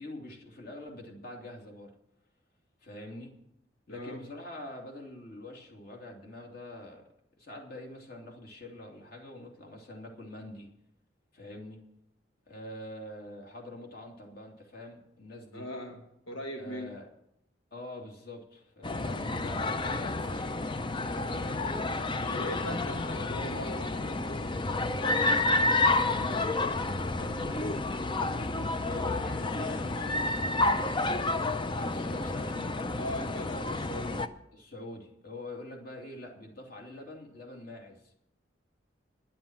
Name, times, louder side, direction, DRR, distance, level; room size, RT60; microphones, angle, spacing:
voice 1, 0.0-1.9 2.8-3.3 3.9-7.1 7.4-10.7 11.3-11.8 12.5-15.7 16.6-17.1 17.7-20.5 20.9-22.8 25.2-27.8 28.1-28.4 28.7-31.2 31.7-32.6 34.5-38.1, left 1 dB, 50° left, 1 dB, 2.7 m, -44 dB
voice 2, 3.9-4.2 15.5-17.0 22.3-24.6 28.8-29.1 32.9-34.2, left 1 dB, 85° left, 2 dB, 1.5 m, -40 dB
sound 1, 18.8-34.3, left 2 dB, 25° left, 0.5 m, -30 dB
11.0 x 7.7 x 8.8 m, 0.79 s
head